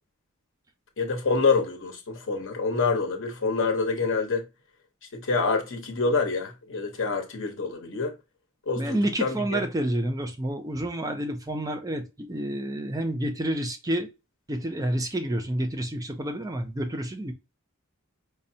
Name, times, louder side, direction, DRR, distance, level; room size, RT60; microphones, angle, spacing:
voice 1, 1.0-4.4 5.1-8.1 8.7-9.6, left 4 dB, 65° left, 0.9 m, -26 dB
voice 2, 8.8-14.1 14.5-17.3, right 1 dB, 15° right, 0.4 m, -29 dB
5.1 x 2.0 x 2.7 m
head